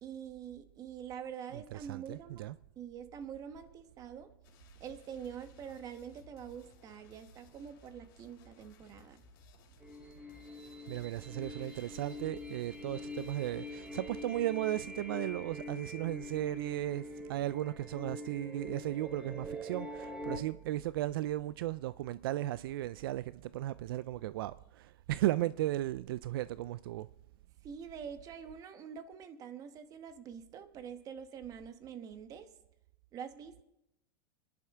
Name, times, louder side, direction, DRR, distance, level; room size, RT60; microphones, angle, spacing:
voice 1, 0.0-2.4 2.8-4.3 4.8-9.2 27.6-32.5 33.1-33.6, right 8 dB, 30° right, 1.2 m, -45 dB
voice 2, 1.7-2.5 10.9-27.1, right 15 dB, 75° right, 0.4 m, -36 dB
sound 1, 4.4-14.4, left 6 dB, 60° left, 3.3 m, -61 dB
sound 2, 9.8-20.4, left 1 dB, 10° right, 1.1 m, -44 dB
25.0 x 10.5 x 3.6 m
supercardioid pair, 145°, 12 cm